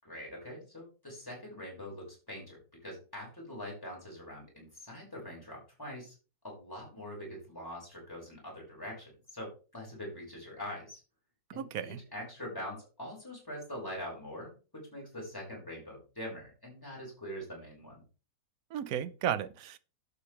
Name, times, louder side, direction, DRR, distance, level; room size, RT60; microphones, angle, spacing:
voice 1, 0.0-6.1 6.4-11.0 11.5-18.0, left 1 dB, 10° left, 6.2 m, -44 dB
voice 2, 11.5-12.0 18.7-19.8, right 9 dB, 60° right, 1.2 m, -34 dB
11.5 x 8.8 x 3.4 m
omnidirectional pair, 2.0 m